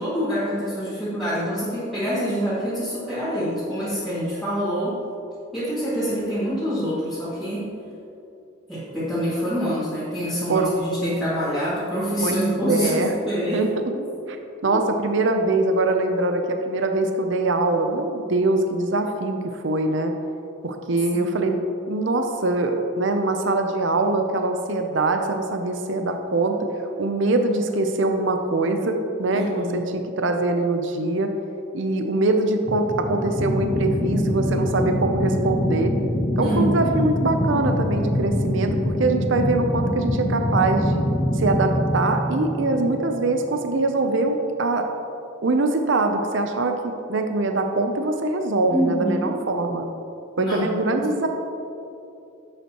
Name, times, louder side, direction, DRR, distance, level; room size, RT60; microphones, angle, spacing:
voice 1, 0.0-5.0 5.5-7.7 8.7-13.7 13.9-14.0 21.1-21.6 29.3-29.9 36.4-37.1 48.7-49.4 50.4-51.3, equal, ahead, -14 dB, 2.1 m, -26 dB
voice 2, 12.2-13.1 13.5-13.7 14.3-14.4 14.6-19.4 19.6-20.1 20.6-21.6 21.9-26.6 27.0-31.3 31.7-35.9 36.4-41.0 41.3-44.9 45.4-49.9 50.4-51.3, right 2 dB, 60° right, 5 dB, 0.6 m, -23 dB
sound 1, 32.7-43.6, left 1 dB, 20° left, 0.5 m, -25 dB
11.0 x 8.2 x 3.0 m, 2.7 s
head